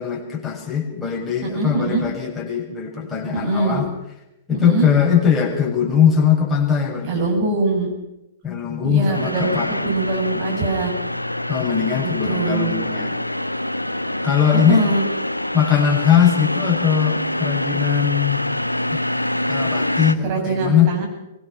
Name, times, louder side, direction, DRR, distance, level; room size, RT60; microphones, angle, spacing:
voice 1, 0.0-3.9 4.5-7.5 8.4-9.7 11.5-13.1 14.2-14.8 15.5-18.4 18.9-19.2 19.5-20.9, left 8 dB, 10° left, -2 dB, 6.4 m, -20 dB
voice 2, 1.5-2.1 3.3-3.8 4.5-4.9 7.1-7.9 8.8-10.9 12.0-12.7 14.5-15.0 20.2-21.1, right 3 dB, 35° right, 1 dB, 7.6 m, -23 dB
sound 1, 9.1-20.2, left 1 dB, 90° left, 0.9 m, -25 dB
24.0 x 21.5 x 5.8 m, 0.91 s
figure-of-eight pair, 110°, 0 cm